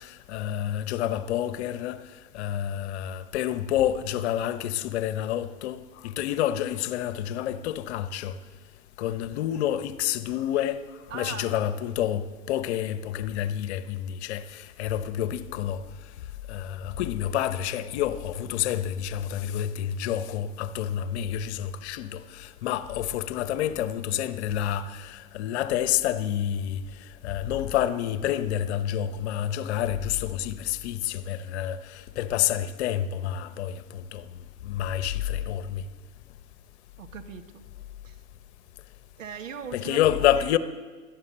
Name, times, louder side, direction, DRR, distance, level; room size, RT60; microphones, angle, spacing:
voice 1, 0.0-2.0 2.3-8.4 9.0-10.8 11.1-15.9 16.5-26.8 27.2-34.3 34.6-35.8 39.7-40.6, left 11 dB, 55° left, 1.0 m, -28 dB
voice 2, 11.1-11.6 37.0-37.6 38.0-38.2 39.2-40.0 40.4-40.5, right 7 dB, 75° right, 1.6 m, -39 dB
16.5 x 12.0 x 6.6 m
hypercardioid pair, 95°, 39 cm